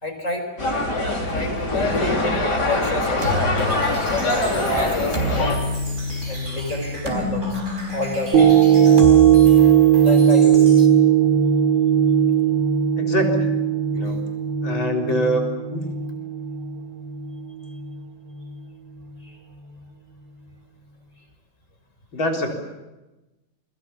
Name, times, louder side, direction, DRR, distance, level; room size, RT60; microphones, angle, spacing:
voice 1, 0.0-0.5 1.3-2.2 2.6-3.4 4.4-5.7 6.3-7.6 7.9-8.9 9.2-9.4 10.0-10.8 13.9-14.2 17.6-17.8 19.2-19.4, left 2 dB, 40° left, 4 dB, 5.2 m, -30 dB
sound 1, 0.6-5.6, left 2 dB, 55° left, 4.7 m, -23 dB
sound 2, 3.2-10.9, equal, 35° right, 4.8 m, -29 dB
sound 3, 8.3-16.7 17.2-17.3, right 9 dB, 60° right, 3.4 m, -17 dB
voice 2, 13.0-13.5 13.9-14.2 14.6-15.9 22.1-22.5, equal, 75° left, 1 dB, 4.9 m, -24 dB
28.0 x 23.0 x 7.2 m, 1.1 s
omnidirectional pair, 2.1 m